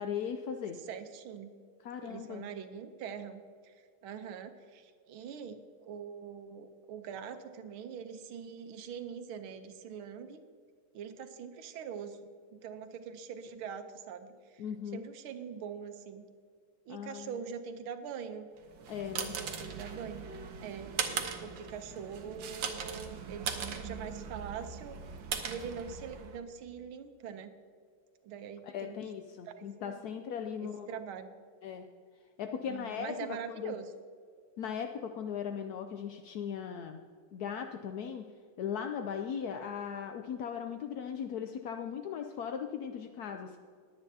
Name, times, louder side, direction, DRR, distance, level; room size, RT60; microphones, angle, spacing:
voice 1, 0.0-0.8 1.8-2.4 14.6-15.0 16.9-17.4 18.9-19.3 28.6-31.0 31.6-31.8 32.4-33.7 34.6-37.0 37.3-38.3 38.6-43.6, left 7 dB, 75° left, 6 dB, 0.8 m, -38 dB
voice 2, 0.8-1.5 2.0-10.4 10.9-14.6 14.9-16.3 16.9-18.5 19.2-20.2 20.6-20.9 21.4-25.0 25.4-27.5 28.2-29.0 29.5-30.0 30.6-31.3 32.7-33.9, right 7 dB, 85° right, 9 dB, 1.7 m, -43 dB
sound 1, 18.7-26.4, right 6 dB, 70° right, 1.6 m, -39 dB
20.5 x 8.9 x 2.8 m, 2.1 s
omnidirectional pair, 2.3 m